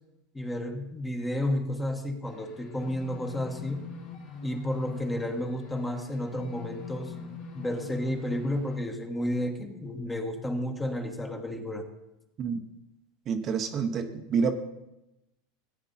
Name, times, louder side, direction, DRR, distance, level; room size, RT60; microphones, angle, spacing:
voice 1, 0.3-3.9 4.4-7.1 7.5-11.8, left 1 dB, 10° left, 4 dB, 1.4 m, -32 dB
sound 1, 2.2-8.8, left 2 dB, 60° left, 2.7 m, -42 dB
voice 2, 13.3-14.6, right 6 dB, 35° right, 6 dB, 1.0 m, -28 dB
14.5 x 8.7 x 4.2 m, 0.93 s
supercardioid pair, 120°, 0 cm